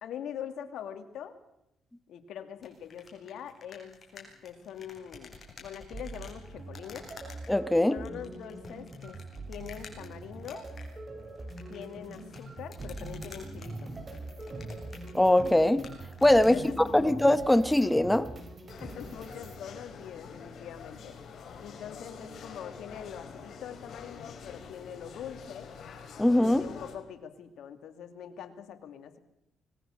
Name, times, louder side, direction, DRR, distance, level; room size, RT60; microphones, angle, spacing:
voice 1, 0.0-1.4 2.1-7.1 7.9-9.2 9.5-10.7 11.7-13.9 16.4-17.2 18.8-21.2 21.6-25.7 26.2-29.2, left 9 dB, 75° left, 8 dB, 2.7 m, -43 dB
sound 1, 2.6-16.6, left 4 dB, 40° left, 7.5 m, -51 dB
sound 2, 5.9-19.6, right 2 dB, 35° right, 5.9 m, -43 dB
voice 2, 7.5-8.0 15.1-15.8 16.2-18.3 26.2-26.6, left 1 dB, 10° left, 13 dB, 1.3 m, -22 dB
sound 3, 18.7-27.0, left 6 dB, 60° left, 4.9 m, -46 dB
25.0 x 21.0 x 6.7 m, 0.85 s
cardioid pair, 90°, 0 cm